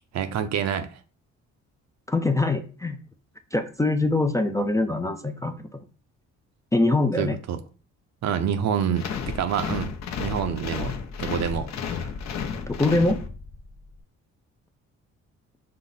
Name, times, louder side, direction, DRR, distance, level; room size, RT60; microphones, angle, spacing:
voice 1, 0.1-0.9 7.2-7.6 8.2-9.9 10.2-12.1, right 8 dB, 60° right, 0.6 m, -27 dB
voice 2, 2.1-3.0 3.5-5.5 6.7-7.4 12.7-13.2, left 2 dB, 10° left, 0.4 m, -23 dB
sound 1, 9.0-13.7, left 6 dB, 60° left, 0.7 m, -32 dB
5.6 x 2.0 x 3.9 m
cardioid pair, 90°, 30 cm